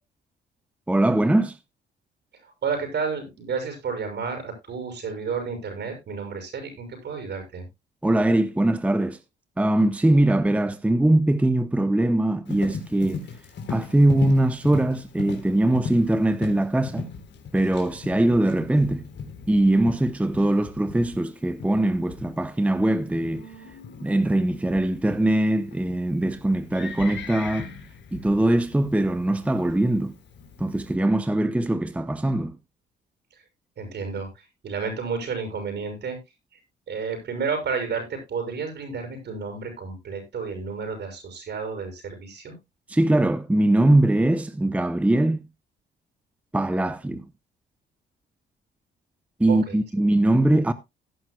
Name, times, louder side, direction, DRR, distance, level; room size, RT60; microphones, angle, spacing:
voice 1, 0.9-1.6 8.0-9.2 9.6-13.3 13.7-17.1 17.5-19.0 19.5-23.5 24.0-27.7 28.1-30.1 30.6-32.5 42.9-45.5 46.5-47.2 49.4-50.7, right 1 dB, 5° right, 0.7 m, -21 dB
voice 2, 2.4-7.6 33.3-33.4 33.8-36.2 36.9-42.6 49.5-49.8, right 5 dB, 60° right, 6.4 m, -31 dB
Livestock farm animals working animals, 12.5-31.0, left 5 dB, 65° left, 3.7 m, -39 dB
17.0 x 9.4 x 2.2 m
cardioid pair, 90°, 20 cm